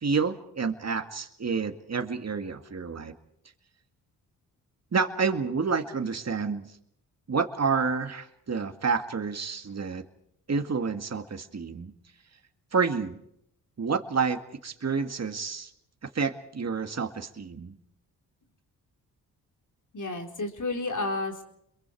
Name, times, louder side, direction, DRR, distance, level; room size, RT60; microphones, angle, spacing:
voice 1, 0.0-3.1 4.9-6.7 7.3-10.0 10.5-11.9 12.7-13.2 13.8-15.7 16.0-17.8, right 5 dB, 40° right, 7 dB, 2.0 m, -29 dB
voice 2, 19.9-21.4, left 2 dB, 50° left, 3 dB, 4.4 m, -31 dB
29.5 x 22.5 x 4.7 m, 0.73 s
supercardioid pair, 45°, 39 cm